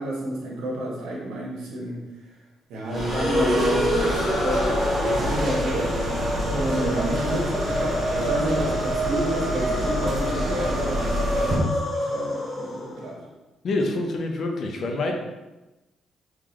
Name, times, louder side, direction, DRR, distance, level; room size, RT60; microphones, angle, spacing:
voice 1, 0.0-2.4 2.7-5.9 6.4-13.2, right 1 dB, 80° right, -3 dB, 1.2 m, -30 dB
sound 1, 2.9-13.1, equal, 25° left, 1.5 m, -27 dB
sound 2, 2.9-11.6, equal, 55° right, 1.0 m, -28 dB
voice 2, 13.6-15.1, left 2 dB, 60° left, 2 dB, 0.7 m, -26 dB
3.7 x 3.2 x 3.2 m, 1.0 s
cardioid pair, 90°, 0 cm